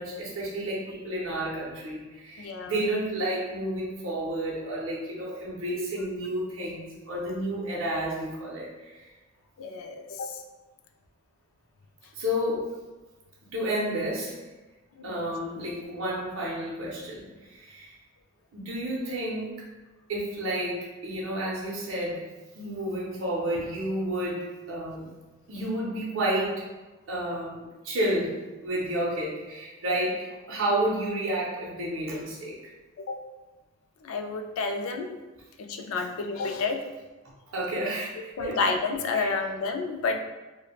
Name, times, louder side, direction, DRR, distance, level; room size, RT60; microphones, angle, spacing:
voice 1, 0.0-9.1 12.1-12.7 13.5-14.4 15.0-17.9 18.5-19.5 20.1-22.2 22.5-25.1 25.5-26.6 27.1-28.3 28.6-32.7 37.5-38.6 39.1-39.3, right 1 dB, 70° right, -5 dB, 0.6 m, -31 dB
voice 2, 2.4-2.7 9.6-10.4 15.0-15.2 33.0-33.2 34.0-35.2 35.6-36.8 38.2-40.2, left 4 dB, 75° left, 5 dB, 0.3 m, -30 dB
3.2 x 2.1 x 2.3 m, 1.2 s
head